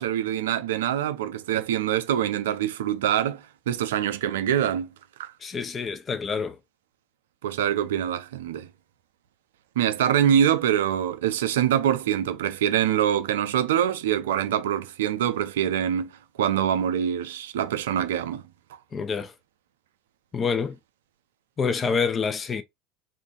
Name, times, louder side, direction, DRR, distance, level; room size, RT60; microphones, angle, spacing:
voice 1, 0.0-4.9 5.2-5.3 7.4-8.7 9.8-16.1 16.4-18.4, right 10 dB, 70° right, 0.4 m, -24 dB
voice 2, 5.4-6.6 18.9-19.3 20.3-20.8 21.6-22.6, left 5 dB, 30° left, 0.5 m, -27 dB
2.8 x 2.5 x 3.6 m
figure-of-eight pair, 70°, 0 cm